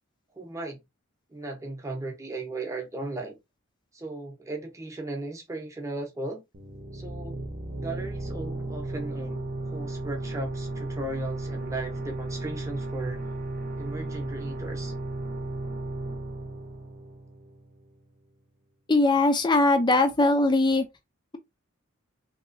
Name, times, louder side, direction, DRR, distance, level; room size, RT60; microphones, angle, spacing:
voice 1, 0.3-0.8 1.3-3.4 3.9-6.4 6.9-7.4 7.8-13.2 13.8-14.9, right 2 dB, 15° right, 0.9 m, -36 dB
sound 1, 6.5-17.9, right 2 dB, 45° right, 0.8 m, -35 dB
voice 2, 18.9-20.8, left 2 dB, 20° left, 0.5 m, -21 dB
3.0 x 3.0 x 2.6 m
head